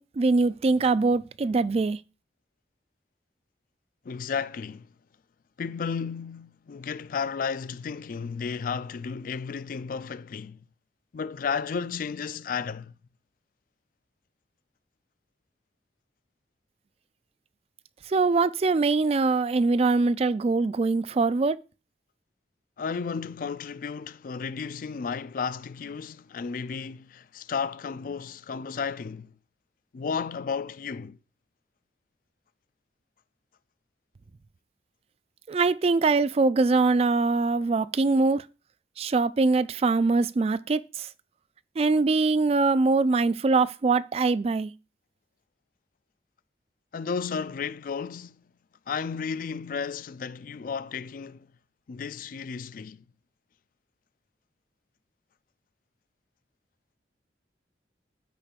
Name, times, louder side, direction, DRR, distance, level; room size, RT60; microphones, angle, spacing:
voice 1, 0.0-2.0 18.1-21.6 35.5-38.4 39.0-41.1 41.8-44.7, right 3 dB, 35° right, 0.3 m, -23 dB
voice 2, 4.0-4.9 5.6-10.6 11.1-12.9 22.8-29.3 29.9-31.2 46.9-48.4 48.9-51.5 51.9-53.0, left 6 dB, 50° left, 0.4 m, -33 dB
13.0 x 5.0 x 2.5 m
head